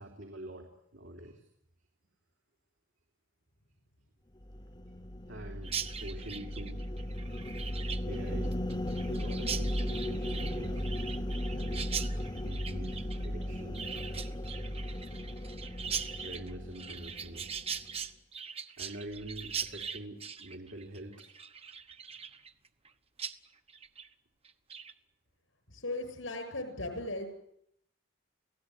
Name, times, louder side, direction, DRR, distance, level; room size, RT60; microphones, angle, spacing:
voice 1, 0.0-1.4 4.9-5.0 5.3-6.8 8.0-8.7 9.0-11.2 11.5-11.9 12.4-13.8 16.0-17.5 18.8-21.1 22.1-22.3, right 1 dB, 70° right, 1 dB, 3.4 m, -45 dB
sound 1, 4.4-18.0, equal, 25° left, 1.2 m, -36 dB
Chirp tweet, 5.6-22.9 23.2-23.3 23.7-24.1 24.4-24.9, right 7 dB, 30° right, 1.2 m, -41 dB
voice 2, 25.7-27.3, left 2 dB, 90° left, 8 dB, 7.5 m, -37 dB
29.5 x 17.0 x 9.7 m, 0.77 s
head